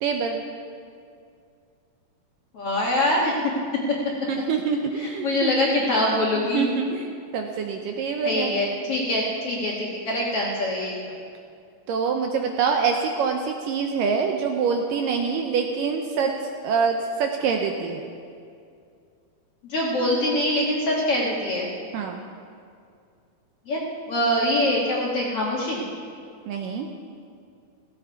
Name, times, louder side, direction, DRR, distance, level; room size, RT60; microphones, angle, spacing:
voice 1, 0.0-0.4 4.3-5.7 6.3-8.6 11.9-18.0 21.9-22.2 26.5-26.9, right 5 dB, 75° right, 3 dB, 2.1 m, -25 dB
voice 2, 2.5-3.3 3.9-4.0 5.0-6.7 8.2-10.9 19.7-21.7 23.7-23.8 24.1-25.8, left 1 dB, 50° left, -4 dB, 1.9 m, -24 dB
15.5 x 15.5 x 4.7 m, 2.3 s
omnidirectional pair, 4.5 m